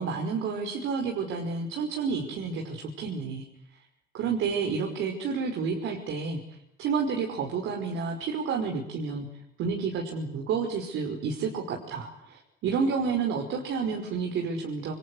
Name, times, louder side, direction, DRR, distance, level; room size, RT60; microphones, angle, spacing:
voice 1, 0.0-3.5 4.1-6.4 6.8-9.3 9.6-14.9, right 5 dB, 85° right, 2 dB, 5.4 m, -30 dB
29.0 x 24.5 x 8.1 m, 0.78 s
cardioid pair, 90°, 20 cm